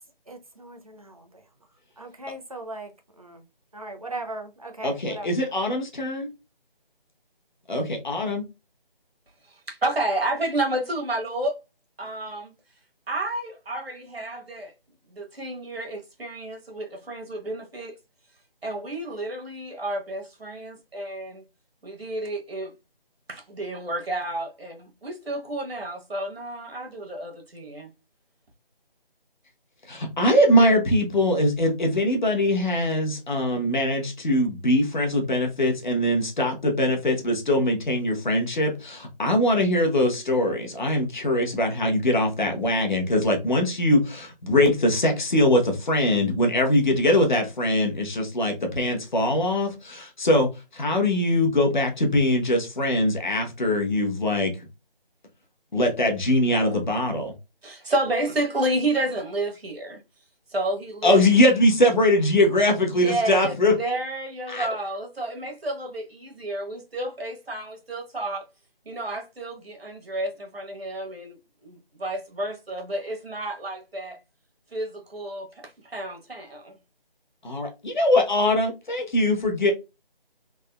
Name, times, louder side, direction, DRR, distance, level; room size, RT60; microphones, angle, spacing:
voice 1, 0.3-1.4 2.0-2.9 3.2-3.4 3.7-5.3, right 2 dB, 40° right, 0.5 m, -38 dB
voice 2, 4.8-6.3 7.7-8.4 29.9-54.5 55.7-57.3 61.0-63.7 64.5-64.7 77.4-79.7, left 1 dB, 50° left, 0.9 m, -22 dB
voice 3, 9.7-11.6 12.0-12.5 13.1-14.7 15.1-17.9 18.6-21.4 21.8-22.7 23.3-27.9 56.5-56.7 57.6-60.0 60.5-61.3 62.9-68.5 68.9-71.4 71.6-74.2 74.7-76.8, right 1 dB, 90° right, 1.1 m, -30 dB
3.4 x 2.1 x 2.2 m
figure-of-eight pair, 165°, 29 cm